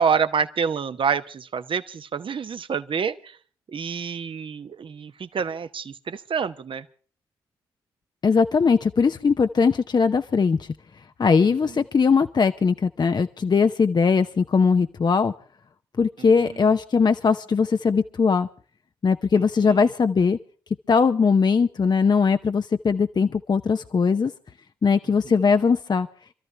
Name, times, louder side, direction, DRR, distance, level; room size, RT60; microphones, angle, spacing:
voice 1, 0.0-3.4 3.7-6.8 11.5-11.7 16.2-16.7 19.4-19.9 25.3-25.5, right 6 dB, 50° right, 11 dB, 1.0 m, -28 dB
voice 2, 8.2-10.7 11.2-15.3 16.0-18.5 19.0-20.4 20.9-24.3 24.8-26.1, left 5 dB, 40° left, 9 dB, 0.7 m, -20 dB
26.5 x 13.5 x 3.4 m, 0.41 s
hypercardioid pair, 40°, 11 cm